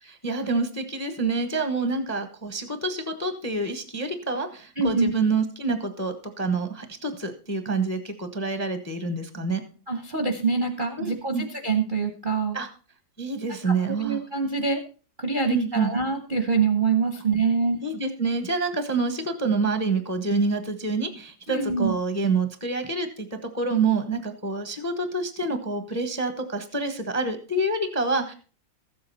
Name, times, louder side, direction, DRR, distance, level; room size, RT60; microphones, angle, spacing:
voice 1, 0.0-9.6 11.0-11.4 12.5-12.7 13.2-14.2 15.5-15.9 17.8-28.3, right 3 dB, 10° left, 8 dB, 0.8 m, -27 dB
voice 2, 4.8-5.1 9.9-12.6 13.6-14.8 15.2-17.8 21.5-22.0, right 4 dB, 35° right, 4 dB, 0.9 m, -25 dB
14.5 x 7.8 x 4.2 m, 0.37 s
omnidirectional pair, 2.1 m